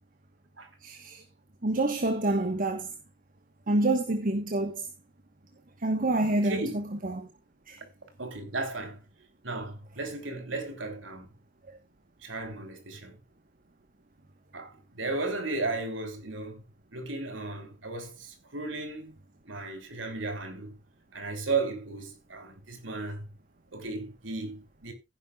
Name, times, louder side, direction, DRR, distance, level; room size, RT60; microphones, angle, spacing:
voice 1, 0.8-1.2 1.6-2.9 3.7-4.9 5.8-7.3 7.7-7.8, right 2 dB, 45° right, 1.3 m, -27 dB
voice 2, 6.4-6.8 8.2-9.0 9.4-11.3 12.2-13.2 14.5-16.6 16.9-19.2 19.5-20.7 21.1-23.3 23.7-24.9, right 3 dB, 90° right, 3.5 m, -35 dB
15.5 x 10.5 x 2.4 m
head